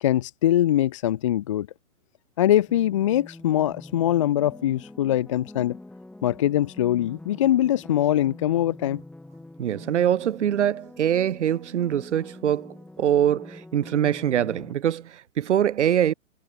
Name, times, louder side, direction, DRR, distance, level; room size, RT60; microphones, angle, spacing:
voice 1, 0.0-1.7 2.4-5.8 6.2-9.0, left 12 dB, 25° left, 0.7 m, -22 dB
sound 1, 2.7-14.7, left 2 dB, ahead, 2.8 m, -45 dB
voice 2, 9.6-16.1, right 10 dB, 55° right, 1.6 m, -23 dB
hypercardioid pair, 155°, 43 cm